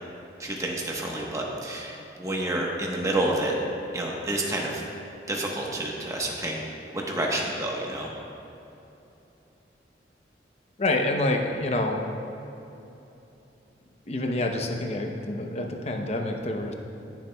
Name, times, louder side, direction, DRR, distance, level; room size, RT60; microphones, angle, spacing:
voice 1, 0.4-1.9 2.2-3.5 3.9-4.8 5.3-6.6 7.1-8.1, right 1 dB, 20° right, -2 dB, 1.1 m, -29 dB
voice 2, 10.8-12.1 14.1-16.7, left 2 dB, 35° left, 3 dB, 0.7 m, -27 dB
18.5 x 7.2 x 2.3 m, 2.9 s
head